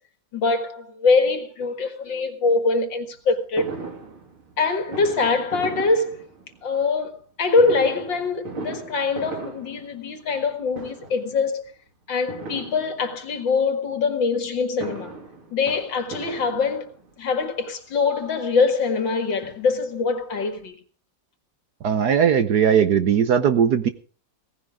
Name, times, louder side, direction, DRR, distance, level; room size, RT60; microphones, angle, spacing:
voice 1, 0.3-3.7 4.6-6.3 6.6-11.6 12.1-15.1 15.5-16.9 17.2-20.8, left 4 dB, 65° left, 2.5 m, -23 dB
Fireworks, 3.6-6.8 7.5-10.5 10.7-11.3 12.3-13.4 14.5-17.2 18.0-18.1 18.3-18.4 18.8-20.0 20.3-20.4 20.6-20.7, right 3 dB, 85° right, 3.8 m, -37 dB
voice 2, 21.8-23.9, right 8 dB, 60° right, 1.3 m, -18 dB
18.0 x 15.5 x 3.6 m
omnidirectional pair, 2.3 m